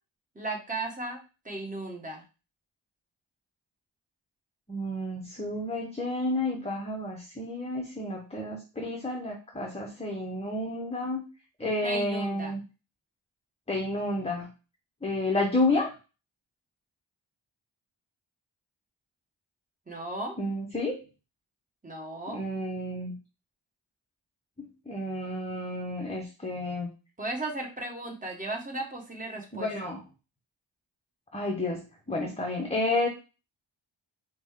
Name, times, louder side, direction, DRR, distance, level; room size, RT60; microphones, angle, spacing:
voice 1, 0.3-2.2 11.8-12.5 19.9-20.3 21.8-22.4 27.2-29.7, right 2 dB, 15° right, 0 dB, 1.1 m, -35 dB
voice 2, 4.7-11.2 11.6-12.6 13.7-14.5 15.0-15.9 20.4-21.0 22.3-23.2 24.9-26.9 29.5-30.0 31.3-31.8 32.1-33.1, left 2 dB, 15° left, 1 dB, 0.7 m, -30 dB
4.9 x 2.2 x 3.5 m, 0.31 s
wide cardioid pair, 95°, 49 cm